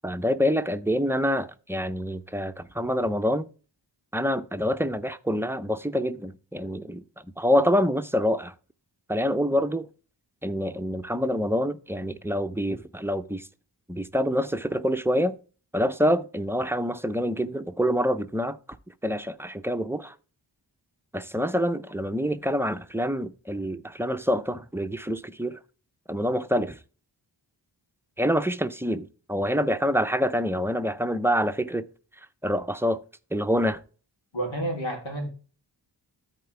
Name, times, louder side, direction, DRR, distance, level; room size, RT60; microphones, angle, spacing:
voice 1, 0.0-3.5 4.1-7.0 7.4-8.5 9.1-9.9 10.4-13.5 13.9-15.4 15.7-18.6 19.0-20.1 21.1-25.6 26.1-26.8 28.2-31.8 32.4-33.0 33.3-33.8, equal, 5° right, 0.6 m, -26 dB
voice 2, 34.3-35.3, right 1 dB, 85° left, 3.1 m, -30 dB
13.0 x 4.4 x 3.3 m
wide cardioid pair, 75°, 45 cm